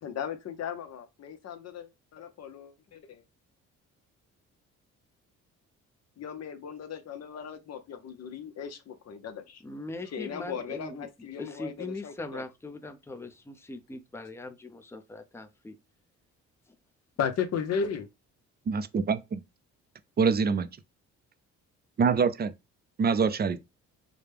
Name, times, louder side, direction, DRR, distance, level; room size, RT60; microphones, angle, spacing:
voice 1, 0.0-3.2 6.2-9.6 10.0-12.4 17.2-18.1, left 7 dB, 60° left, 0.9 m, -36 dB
voice 2, 9.6-15.8 16.7-16.8, left 2 dB, 10° left, 0.6 m, -41 dB
voice 3, 18.7-19.4 20.2-20.7 22.0-22.5 23.0-23.6, right 5 dB, 35° right, 0.5 m, -25 dB
4.9 x 2.2 x 3.4 m
cardioid pair, 90°, 30 cm